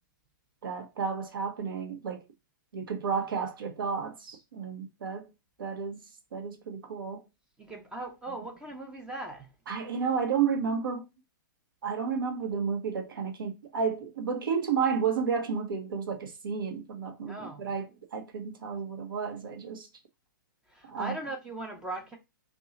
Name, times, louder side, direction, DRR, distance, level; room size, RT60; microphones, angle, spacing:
voice 1, 0.6-2.2 2.7-5.3 5.6-6.0 6.3-7.2 9.7-11.0 11.8-19.9 20.9-21.1, right 6 dB, 85° right, 0.9 m, -32 dB
voice 2, 7.6-9.5 17.3-17.7 20.7-22.2, right 2 dB, 5° right, 0.5 m, -39 dB
2.9 x 2.3 x 3.7 m
hypercardioid pair, 155°, 11 cm